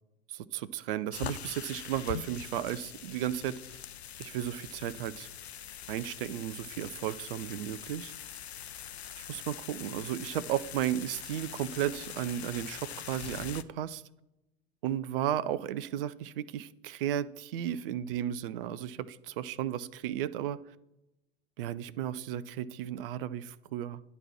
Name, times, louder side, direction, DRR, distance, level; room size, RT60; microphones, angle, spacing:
voice 1, 0.3-3.8 4.2-5.3 5.9-8.1 9.3-14.0 14.8-20.6 21.6-24.0, right 11 dB, 60° right, 16 dB, 0.5 m, -34 dB
sound 1, 1.1-13.6, left 10 dB, 80° left, 0.5 m, -43 dB
9.8 x 4.1 x 7.4 m, 0.92 s
figure-of-eight pair, 80°, 32 cm